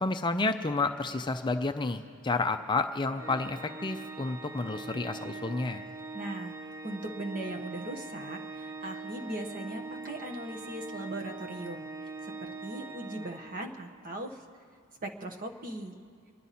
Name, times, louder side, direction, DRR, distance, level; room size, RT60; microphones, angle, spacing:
voice 1, 0.0-5.8, left 3 dB, 20° left, 7 dB, 0.4 m, -30 dB
Organ, 3.2-14.0, right 3 dB, 15° right, 0.7 m, -42 dB
voice 2, 6.1-6.5 6.8-11.9 12.2-14.4 15.0-15.9, right 1 dB, 40° right, 3 dB, 1.2 m, -39 dB
27.0 x 10.5 x 4.2 m, 2.1 s
head